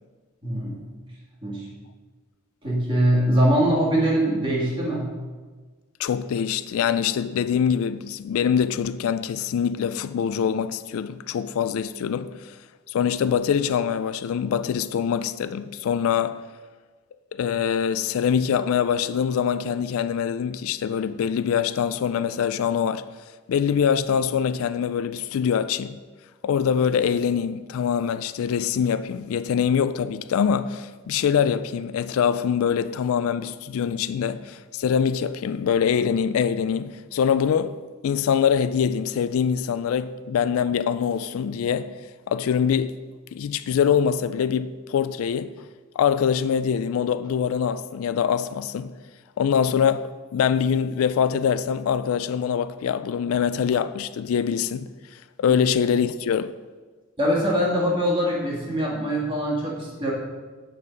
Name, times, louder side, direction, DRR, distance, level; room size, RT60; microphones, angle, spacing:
voice 1, 0.4-0.8 1.4-1.7 2.6-5.1 55.5-55.6 57.2-60.1, right 1 dB, 25° right, 1.9 m, -23 dB
voice 2, 6.0-12.5 12.9-16.4 17.3-23.1 23.5-26.0 26.4-37.8 38.0-41.9 42.3-43.0 43.3-45.5 46.0-48.9 49.4-54.9 55.4-56.5, left 7 dB, 75° left, 0.3 m, -24 dB
8.0 x 5.5 x 5.2 m
head